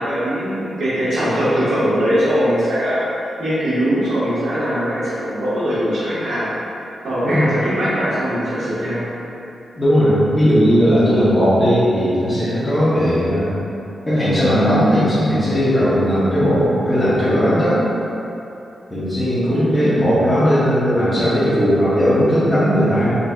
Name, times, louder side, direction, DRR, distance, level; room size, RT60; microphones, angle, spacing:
voice 1, 0.0-3.0 3.4-6.5 7.0-9.0 19.5-19.9, equal, 85° right, -12 dB, 1.5 m, -21 dB
voice 2, 9.8-13.5 14.1-17.8 18.9-23.1, equal, 20° left, -14 dB, 0.9 m, -17 dB
4.0 x 2.8 x 2.4 m, 2.9 s
cardioid pair, 95°, 0 cm